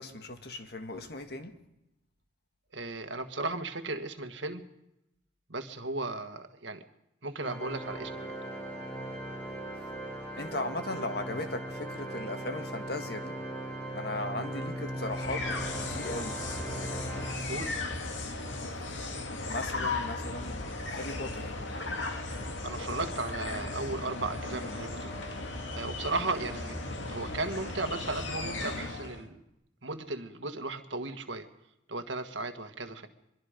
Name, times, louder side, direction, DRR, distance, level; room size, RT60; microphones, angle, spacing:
voice 1, 0.0-1.5 10.4-13.4 13.9-15.5 15.8-16.4 19.5-20.6 20.9-21.5, left 2 dB, 55° left, 1.8 m, -37 dB
voice 2, 2.7-4.6 5.5-6.8 7.2-8.3 17.5-17.8 22.6-25.4 25.7-26.8 27.1-29.4 29.8-31.5 31.9-33.1, right 2 dB, 75° right, 1.6 m, -36 dB
Organ, 7.4-18.0, right 1 dB, 10° left, 3.9 m, -39 dB
sound 1, 15.0-29.3, left 2 dB, 85° left, 2.2 m, -36 dB
24.0 x 23.0 x 5.1 m
head